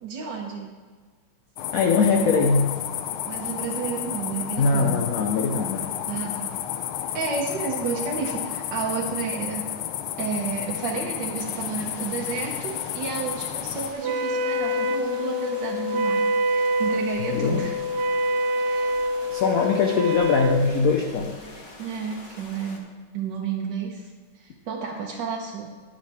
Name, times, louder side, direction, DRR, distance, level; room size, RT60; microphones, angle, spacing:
voice 1, 0.0-0.7 3.3-5.0 6.1-6.5 7.1-9.7 10.2-17.8 18.6-18.9 19.6-19.8 21.8-22.8 23.1-24.0 24.3-25.7, right 5 dB, 60° right, -1 dB, 1.4 m, -31 dB
sound 1, 1.6-13.9, left 10 dB, 80° left, 1.4 m, -32 dB
voice 2, 1.7-2.7 4.6-5.9 17.3-17.6 19.3-21.6, left 4 dB, 60° left, 2 dB, 0.9 m, -22 dB
sound 2, 11.4-22.8, left 2 dB, 45° left, 1.7 m, -45 dB
Wind instrument woodwind instrument, 14.0-20.6, left 1 dB, 80° right, 0.9 m, -25 dB
11.0 x 10.5 x 3.4 m, 1.5 s
omnidirectional pair, 2.4 m